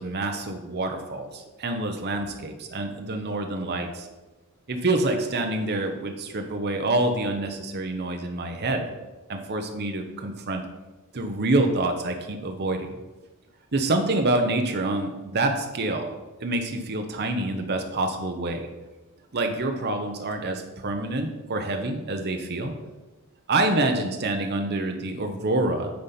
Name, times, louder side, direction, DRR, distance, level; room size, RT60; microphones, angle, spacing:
voice 1, 0.0-4.1 4.7-8.9 9.3-10.6 11.1-12.9 13.7-16.1 16.4-18.7 19.3-22.7 23.5-25.9, right 2 dB, 50° right, 4 dB, 0.9 m, -27 dB
8.6 x 4.2 x 5.7 m, 1.1 s
head